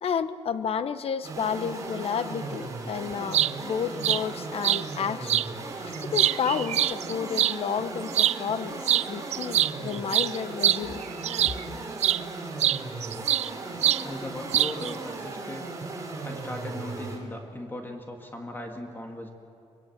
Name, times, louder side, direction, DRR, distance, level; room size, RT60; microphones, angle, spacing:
voice 1, 0.0-5.4 5.8-8.8 9.1-11.0, left 7 dB, 60° left, 12 dB, 1.0 m, -31 dB
sound 1, 1.2-17.2, right 3 dB, 30° right, 3.9 m, -37 dB
sound 2, 3.1-3.5 4.0-4.2 4.6-4.8 5.3-5.5 5.9-7.6 8.1-8.4 8.9-9.1 9.3-11.6 12.0-12.2 12.6-13.5 13.8-14.0 14.5-14.9, right 11 dB, 85° right, 0.5 m, -24 dB
voice 2, 14.0-15.7 16.2-19.3, left 1 dB, 20° left, 2 dB, 2.1 m, -38 dB
25.0 x 21.5 x 7.5 m, 2.6 s
wide cardioid pair, 135°, 11 cm